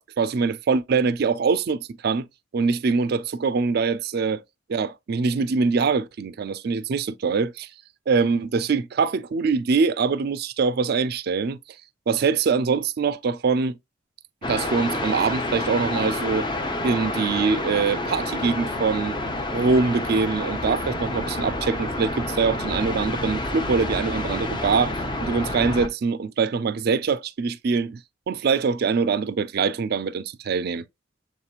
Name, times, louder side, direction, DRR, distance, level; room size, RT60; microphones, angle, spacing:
voice 1, 0.0-2.2 2.5-4.4 4.7-7.7 8.1-11.6 12.1-13.7 14.5-16.5 16.8-19.2 19.5-24.9 25.2-30.8, right 5 dB, 50° right, 0.4 m, -23 dB
sound 1, 14.4-25.9, left 1 dB, 25° left, 0.6 m, -29 dB
7.2 x 2.9 x 2.4 m
head